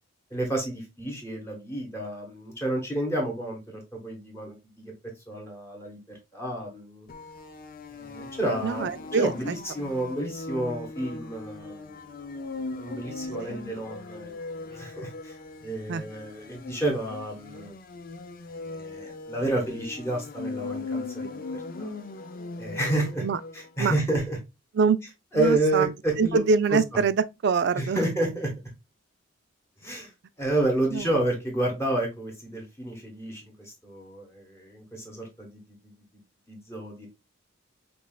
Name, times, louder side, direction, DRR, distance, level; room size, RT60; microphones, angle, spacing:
voice 1, 0.3-4.9 5.3-6.0 6.3-7.1 7.9-12.1 12.8-14.3 14.7-15.4 15.6-17.7 18.7-21.4 21.8-21.9 22.6-23.3 23.5-24.4 25.3-26.4 26.7-26.8 27.8-28.5 29.8-30.1 30.4-35.9 36.5-37.1, right 1 dB, 10° left, 1.0 m, -30 dB
sound 1, 7.1-23.7, left 3 dB, 40° left, 0.4 m, -39 dB
voice 2, 8.6-9.6 15.9-16.0 23.2-23.4 23.8-23.9 24.7-25.0 25.3-25.9 26.2-28.0 30.9-31.1, right 5 dB, 55° right, 0.3 m, -24 dB
5.3 x 2.4 x 2.3 m
head